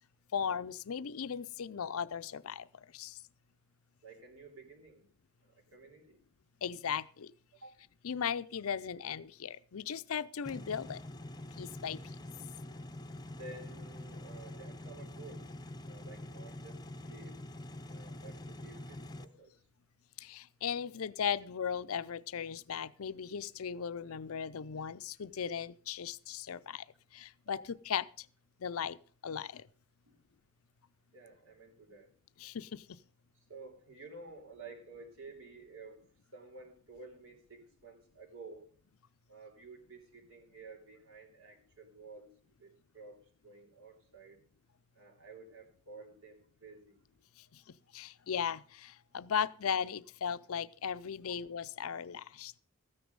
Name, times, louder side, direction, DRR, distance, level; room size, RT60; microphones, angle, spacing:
voice 1, 0.3-3.2 6.6-7.3 8.0-11.0 11.6-12.0 20.2-26.8 27.1-28.3 28.6-29.0 29.2-29.7 32.4-33.0 47.4-52.6, left 7 dB, 70° left, 0.5 m, -37 dB
voice 2, 4.0-5.1 5.4-6.2 7.5-7.8 13.3-15.5 15.8-17.4 17.9-19.7 27.5-27.7 30.0-30.2 31.1-32.1 33.3-38.7 39.3-42.3 42.6-44.4 44.9-47.1, right 3 dB, 65° right, 3.1 m, -52 dB
sound 1, 10.4-19.2, left 1 dB, 20° left, 0.7 m, -46 dB
14.0 x 9.5 x 5.3 m
head